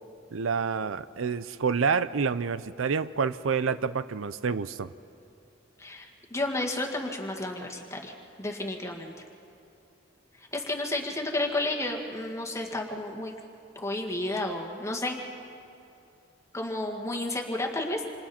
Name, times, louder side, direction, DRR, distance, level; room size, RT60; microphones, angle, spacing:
voice 1, 0.3-4.9, right 5 dB, 75° right, 14 dB, 0.5 m, -28 dB
voice 2, 5.8-9.1 10.4-13.3 13.8-15.2 16.5-18.0, left 2 dB, 15° left, 0 dB, 1.9 m, -32 dB
28.5 x 25.5 x 4.4 m, 2.6 s
head